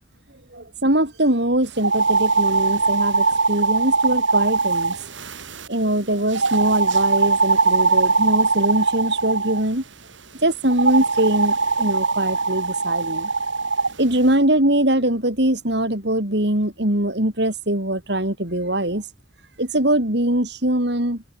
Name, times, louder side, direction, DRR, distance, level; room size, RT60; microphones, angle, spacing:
voice 1, 0.5-5.1 5.7-9.8 10.4-13.3 14.0-19.0 19.6-21.2, right 1 dB, 60° right, 4.1 m, -22 dB
sound 1, 1.8-5.7 6.3-9.6 10.7-13.9, right 3 dB, 75° right, 5.1 m, -21 dB
open air
head